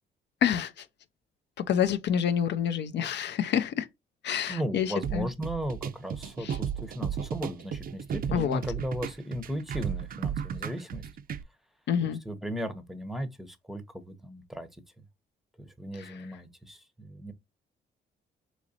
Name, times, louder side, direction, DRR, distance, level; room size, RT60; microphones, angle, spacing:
voice 1, 0.4-0.9 1.7-3.9 4.2-5.3 6.4-6.6 8.3-8.6 11.9-12.2 15.9-16.3, left 8 dB, 60° left, 0.5 m, -28 dB
voice 2, 4.5-11.1 12.0-14.7 15.6-17.3, equal, ahead, 0.7 m, -36 dB
sound 1, 5.0-11.4, right 8 dB, 45° right, 0.4 m, -34 dB
3.9 x 3.0 x 2.7 m
cardioid pair, 90°, 20 cm